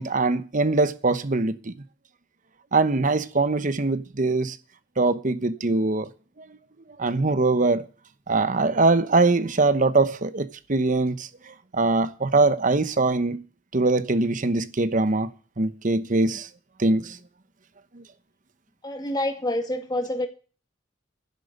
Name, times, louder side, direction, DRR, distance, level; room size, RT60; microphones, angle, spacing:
voice 1, 0.0-1.7 2.7-4.6 5.0-6.1 7.0-7.8 8.3-11.3 11.7-13.4 13.7-15.3 15.6-16.5 16.8-17.2, right 3 dB, 45° right, 1.0 m, -22 dB
voice 2, 18.8-20.3, left 1 dB, 20° left, 2.4 m, -27 dB
11.0 x 7.9 x 8.0 m
head